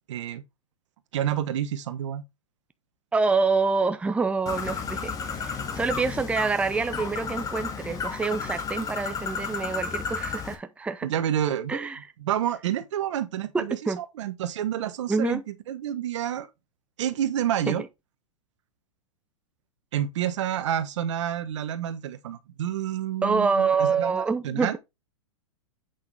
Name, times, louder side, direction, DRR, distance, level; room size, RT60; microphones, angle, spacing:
voice 1, 0.1-0.4 1.1-2.2 11.0-11.9 12.2-16.5 17.0-17.8 19.9-24.1 24.4-24.7, right 10 dB, 65° right, 1.2 m, -29 dB
voice 2, 3.1-11.1 11.7-12.0 13.5-14.0 15.1-15.4 17.7-17.8 23.2-24.7, right 4 dB, 5° right, 0.7 m, -26 dB
Bird, 4.5-10.6, left 5 dB, 20° left, 2.0 m, -33 dB
8.4 x 5.9 x 3.4 m
hypercardioid pair, 115°, 16 cm